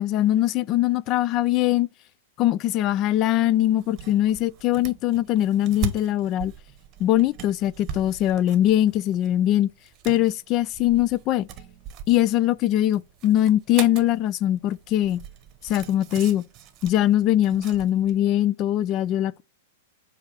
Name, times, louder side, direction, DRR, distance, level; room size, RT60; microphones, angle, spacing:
voice 1, 0.0-1.9 2.4-6.5 7.0-9.7 10.0-11.5 12.1-15.2 15.6-16.4 16.8-19.4, left 13 dB, 40° left, 0.4 m, -22 dB
sound 1, 3.8-18.2, right 7 dB, 35° right, 0.9 m, -39 dB
7.2 x 2.8 x 4.7 m
hypercardioid pair, 110°, 0 cm